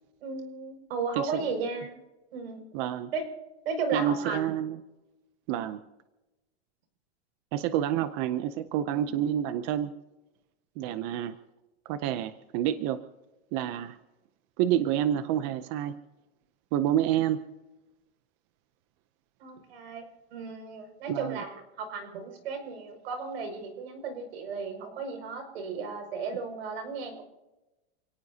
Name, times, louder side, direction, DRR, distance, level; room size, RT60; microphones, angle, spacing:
voice 1, 0.2-2.0 2.3-2.6 3.1-3.3 3.7-4.5 8.9-9.2 13.7-13.8 19.4-20.0 20.3-27.2, right 4 dB, 65° right, 5 dB, 5.7 m, -35 dB
voice 2, 1.1-1.5 2.7-3.1 3.9-4.8 5.5-5.8 7.5-9.9 10.8-11.3 11.9-13.0 13.5-14.0 14.6-16.0 16.7-17.4 21.1-21.4, right 11 dB, 25° right, 12 dB, 0.5 m, -28 dB
29.0 x 17.5 x 2.8 m, 1.0 s
supercardioid pair, 170°, 34 cm